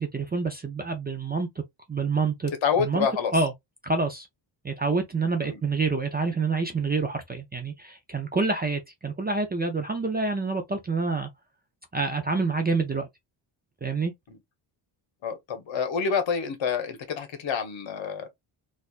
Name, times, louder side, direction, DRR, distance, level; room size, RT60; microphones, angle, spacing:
voice 1, 0.0-1.5 1.9-2.5 2.8-3.1 3.3-3.5 3.8-4.3 4.6-11.3 11.9-13.1 13.8-14.1, right 4 dB, 20° right, 0.4 m, -27 dB
voice 2, 2.6-3.3 5.4-5.6 14.3-14.4 15.2-18.3, left 6 dB, 65° left, 1.2 m, -27 dB
4.2 x 2.5 x 2.4 m
cardioid pair, 145°, 50 cm